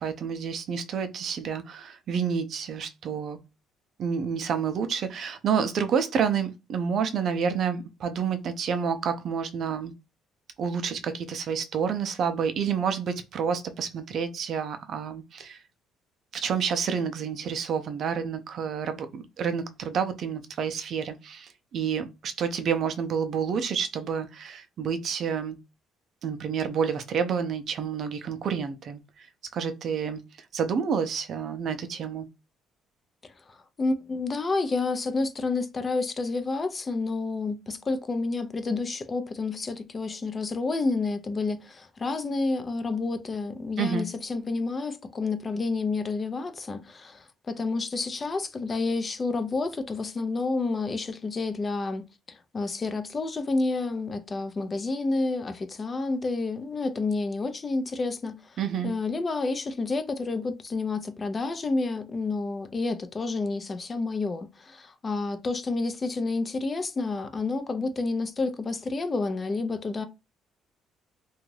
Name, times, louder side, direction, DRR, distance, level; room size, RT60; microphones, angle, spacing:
voice 1, 0.0-3.4 4.0-9.9 10.6-15.6 16.3-25.6 26.2-29.0 29.5-30.2 30.5-32.3 43.8-44.1 58.6-58.9, right 7 dB, 60° right, 0.4 m, -29 dB
voice 2, 33.2-58.6 58.8-70.0, left 3 dB, 35° left, 0.4 m, -29 dB
2.5 x 2.3 x 3.1 m
cardioid pair, 85°, 0 cm